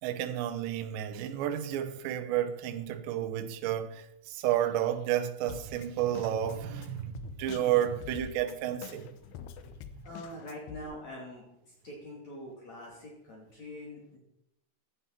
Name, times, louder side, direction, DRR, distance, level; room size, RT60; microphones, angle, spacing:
voice 1, 0.0-9.2, right 11 dB, 75° right, 3.1 m, -31 dB
Drum kit, 5.5-10.8, left 9 dB, 75° left, 2.6 m, -47 dB
voice 2, 10.0-14.2, left 1 dB, 40° left, 3.7 m, -44 dB
16.5 x 11.5 x 4.4 m
omnidirectional pair, 5.5 m